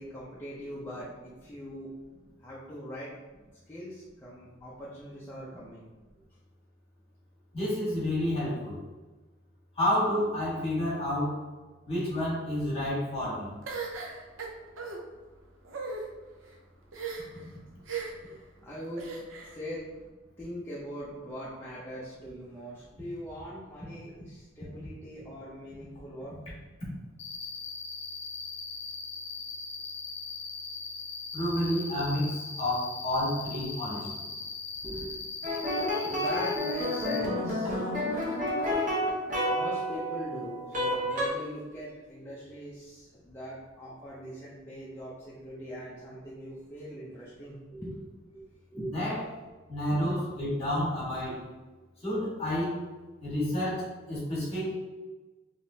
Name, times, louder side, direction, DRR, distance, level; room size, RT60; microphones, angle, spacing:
voice 1, 0.0-1.9 2.4-3.1 3.7-5.9 18.2-19.1 19.5-19.8 20.4-26.4 34.8-35.2 36.1-37.9 39.5-48.1 48.3-48.4 48.7-49.2 50.0-50.2, equal, 10° left, -8 dB, 0.5 m, -41 dB
voice 2, 7.5-8.8 9.7-11.4 11.9-13.5 31.3-34.3 48.8-49.2 49.7-51.4 52.0-52.8 53.2-54.7, left 1 dB, 30° left, -7 dB, 1.5 m, -30 dB
sound 1, 13.7-15.0 15.6-16.0 16.9-17.4 17.9-18.3 19.0-19.5, right 4 dB, 70° right, 0.6 m, -37 dB
Cricket, 27.2-37.2, left 4 dB, 65° left, 0.5 m, -39 dB
sound 2, 35.4-41.3, left 1 dB, 40° right, 0.9 m, -30 dB
3.5 x 3.0 x 2.7 m, 1.2 s
head